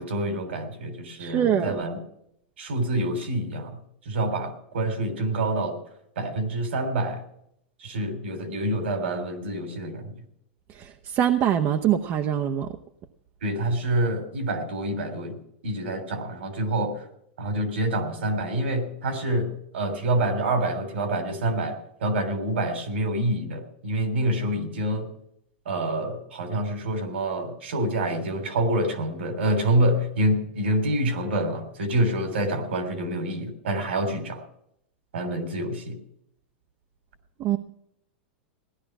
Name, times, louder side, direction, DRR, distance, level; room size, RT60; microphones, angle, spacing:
voice 1, 0.0-2.0 2.6-3.8 4.0-5.8 6.2-7.2 7.8-10.1 13.4-15.4 15.6-17.0 17.4-21.7 22.0-25.1 25.6-34.4 35.1-36.0, right 1 dB, 80° right, 7 dB, 3.3 m, -27 dB
voice 2, 1.2-1.8 10.7-12.7 37.4-37.6, right 10 dB, 40° right, 5 dB, 0.9 m, -24 dB
16.5 x 11.0 x 6.1 m, 0.76 s
hypercardioid pair, 120°, 6 cm